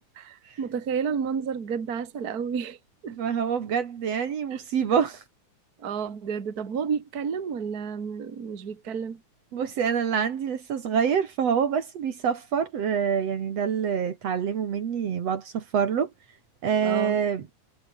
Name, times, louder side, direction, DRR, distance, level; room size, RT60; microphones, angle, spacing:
voice 1, 0.0-2.8 3.0-3.2 4.5-4.6 5.8-9.2 16.8-17.2, right 6 dB, 35° right, 2.2 m, -31 dB
voice 2, 3.1-5.2 9.5-16.1 16.6-17.4, right 7 dB, 55° right, 2.7 m, -26 dB
omnidirectional pair, 3.5 m